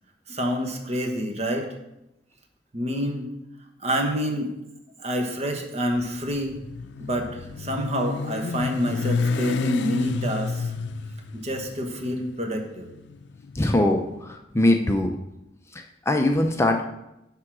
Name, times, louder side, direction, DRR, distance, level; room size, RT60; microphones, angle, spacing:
voice 1, 0.3-1.7 2.7-3.3 3.8-4.5 5.0-6.6 7.0-10.7 11.3-12.9, equal, 40° right, 3 dB, 1.2 m, -27 dB
Motorcycle, 5.9-14.1, left 4 dB, 75° left, 0.5 m, -31 dB
voice 2, 13.5-15.2 15.7-16.8, left 1 dB, 15° left, 4 dB, 0.5 m, -22 dB
9.3 x 3.7 x 6.1 m, 0.89 s
head